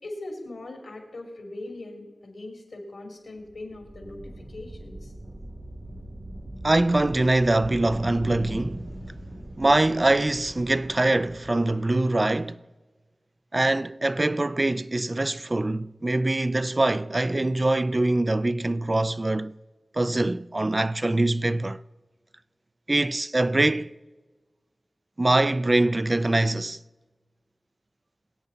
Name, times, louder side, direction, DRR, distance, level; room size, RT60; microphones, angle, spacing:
voice 1, 0.0-5.1, left 2 dB, 85° left, 2.6 m, -40 dB
sound 1, 3.4-11.9, right 1 dB, 75° right, 3.1 m, -40 dB
voice 2, 6.6-8.9 9.6-12.6 13.5-19.5 19.9-21.8 22.9-23.9 25.2-26.8, right 2 dB, 40° right, 0.3 m, -23 dB
22.5 x 8.1 x 4.0 m
cardioid pair, 40°, 0 cm